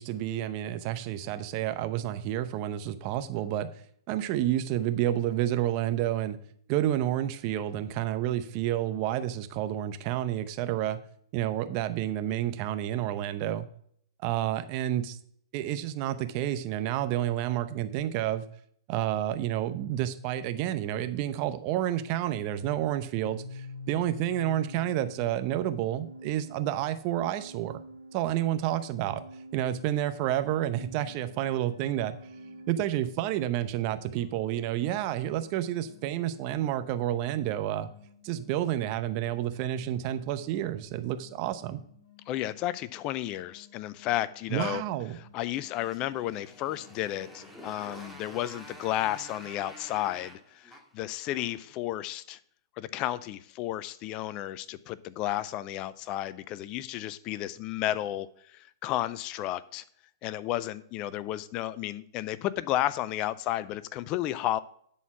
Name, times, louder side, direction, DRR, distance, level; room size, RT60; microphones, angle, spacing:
voice 1, 0.0-3.7 4.1-6.4 6.7-11.0 11.3-13.7 14.2-15.2 15.5-18.4 18.9-27.8 28.1-29.2 29.5-32.1 32.7-37.9 38.2-41.8 44.5-45.2, right 12 dB, 40° right, 11 dB, 0.7 m, -30 dB
Organ, 22.9-33.7, left 1 dB, 85° right, 1.3 m, -47 dB
sound 1, 31.3-47.7, left 9 dB, 65° left, 2.3 m, -59 dB
voice 2, 42.3-44.8 45.3-52.4 52.8-59.8 60.2-64.6, left 14 dB, 35° left, 17 dB, 0.4 m, -32 dB
Motorcycle, 45.4-51.8, equal, 5° left, 1.8 m, -49 dB
11.0 x 4.3 x 5.8 m, 0.65 s
figure-of-eight pair, 115°, 2 cm